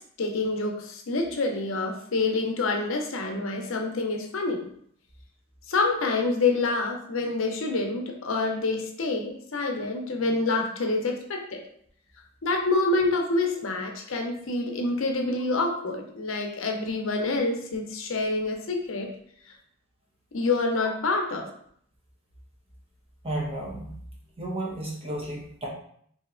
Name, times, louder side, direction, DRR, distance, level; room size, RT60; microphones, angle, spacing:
voice 1, 0.2-4.7 5.7-11.6 12.4-19.1 20.3-21.5, left 3 dB, 65° left, 2 dB, 0.6 m, -27 dB
voice 2, 23.2-23.9 24.4-25.7, right 1 dB, 25° right, -3 dB, 1.0 m, -32 dB
3.2 x 2.7 x 3.7 m, 0.64 s
head